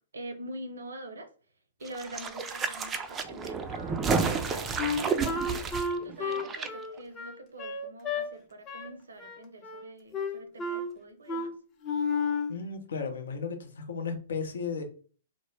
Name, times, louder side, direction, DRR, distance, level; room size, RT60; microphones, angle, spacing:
voice 1, 0.1-1.3 1.8-4.0 4.2-5.7 6.0-11.5, right 1 dB, 80° right, 0.6 m, -45 dB
sound 1, 1.8-6.7 7.0-7.1, right 5 dB, 20° right, 0.3 m, -31 dB
Wind instrument woodwind instrument, 4.8-8.3 8.7-8.9 9.2-9.9 10.1-10.9 11.3-11.5 11.8-12.5, left 4 dB, 25° left, 0.6 m, -32 dB
voice 2, 12.5-14.8, left 5 dB, 70° left, 0.6 m, -34 dB
2.0 x 2.0 x 3.1 m
hypercardioid pair, 120°, 0 cm